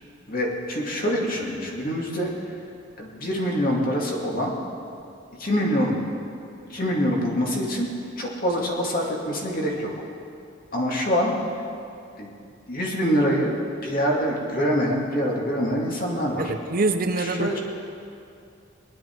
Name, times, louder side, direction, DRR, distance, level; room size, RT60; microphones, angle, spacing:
voice 1, 0.3-2.5 3.0-4.5 5.4-6.0 6.7-9.9 10.7-11.6 12.2-12.3 12.7-13.6 13.8-16.5 17.2-17.6, equal, 45° left, -2 dB, 2.2 m, -25 dB
voice 2, 16.4-17.5, right 3 dB, 45° right, 8 dB, 0.6 m, -25 dB
20.0 x 11.0 x 4.5 m, 2.5 s
head